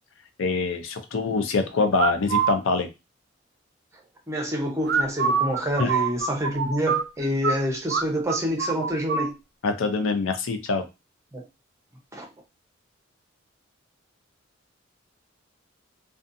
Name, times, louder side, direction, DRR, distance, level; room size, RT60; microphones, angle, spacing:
voice 1, 0.4-2.9 5.8-5.9 9.6-10.8, left 4 dB, 80° left, 0.5 m, -24 dB
sound 1, 2.0-2.6 4.8-7.6 7.9-8.0 8.3-9.3, right 6 dB, 55° right, 0.4 m, -25 dB
voice 2, 4.3-9.4 11.3-11.4 12.1-12.3, equal, 15° right, 0.7 m, -27 dB
2.6 x 2.3 x 2.5 m
head